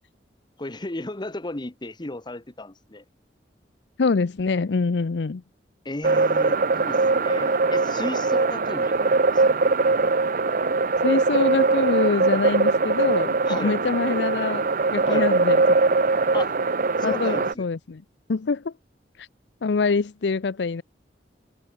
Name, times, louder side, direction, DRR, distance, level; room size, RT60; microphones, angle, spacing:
voice 1, 0.6-3.0 5.8-9.4 13.4-13.8 15.0-15.3 16.3-16.5 17.0-17.7, left 2 dB, 25° left, 1.1 m, -34 dB
voice 2, 4.0-5.4 11.0-14.6 14.9-15.8 17.0-18.0 18.3-18.7 19.2-19.3 19.6-20.8, left 4 dB, 70° left, 0.5 m, -25 dB
sound 1, 6.0-17.5, right 3 dB, 50° right, 0.9 m, -21 dB
head